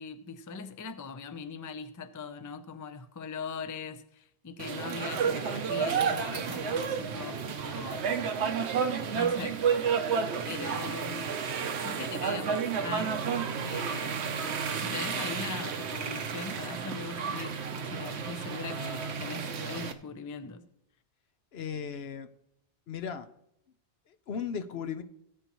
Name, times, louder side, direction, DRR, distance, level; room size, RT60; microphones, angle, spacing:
voice 1, 0.0-8.1 9.1-9.6 10.5-11.4 11.8-13.3 13.6-14.2 14.8-20.7, left 5 dB, 25° left, 0.4 m, -40 dB
sound 1, 4.6-19.9, right 6 dB, 75° right, 1.0 m, -31 dB
voice 2, 21.5-22.3 22.9-23.3 24.1-25.0, left 7 dB, 70° left, 0.9 m, -36 dB
17.0 x 8.1 x 3.0 m
omnidirectional pair, 1.1 m